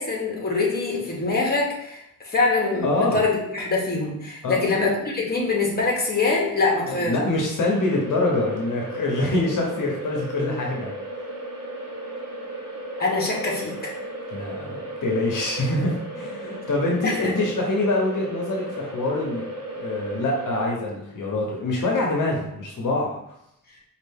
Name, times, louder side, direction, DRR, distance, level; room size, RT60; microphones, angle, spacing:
voice 1, 0.0-7.3 13.0-13.9 16.4-16.6 17.0-17.3, left 3 dB, 30° left, -2 dB, 1.0 m, -24 dB
voice 2, 2.8-3.2 4.4-4.7 6.9-10.9 14.3-19.4 19.7-23.1, left 2 dB, 65° left, -1 dB, 0.8 m, -25 dB
sound 1, 7.6-20.7, right 1 dB, 50° right, 1.0 m, -35 dB
4.4 x 2.4 x 3.5 m, 0.77 s
wide cardioid pair, 145°, 34 cm